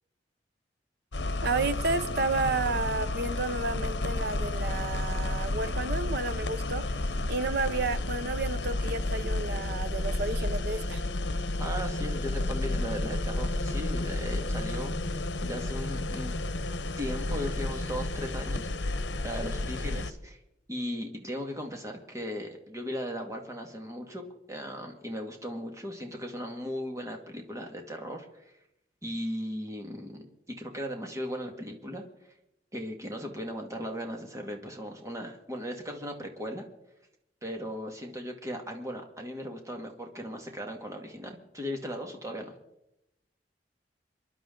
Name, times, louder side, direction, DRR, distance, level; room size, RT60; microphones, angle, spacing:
sound 1, 1.1-20.1, left 2 dB, 85° left, 0.9 m, -31 dB
voice 1, 1.4-7.0 7.3-11.0, right 3 dB, 65° right, 1.0 m, -31 dB
voice 2, 11.6-16.3 17.0-20.4 20.7-24.2 24.5-28.5 29.0-30.2 30.6-32.0 32.7-36.6 37.4-42.5, equal, 20° right, 2.1 m, -37 dB
27.0 x 11.0 x 3.9 m
head